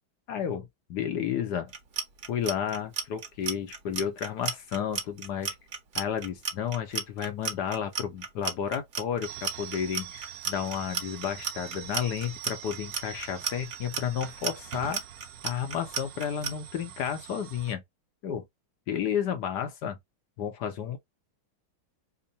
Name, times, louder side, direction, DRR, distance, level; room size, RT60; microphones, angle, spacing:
voice 1, 0.3-1.7 2.3-5.6 5.9-15.0 15.4-17.8 18.2-18.4 18.9-20.0 20.4-21.0, left 8 dB, 65° left, 1.1 m, -32 dB
Clock, 1.7-16.5, right 6 dB, 50° right, 1.3 m, -33 dB
sound 1, 9.2-17.7, right 10 dB, 90° right, 0.8 m, -44 dB
3.6 x 2.1 x 3.9 m
omnidirectional pair, 2.2 m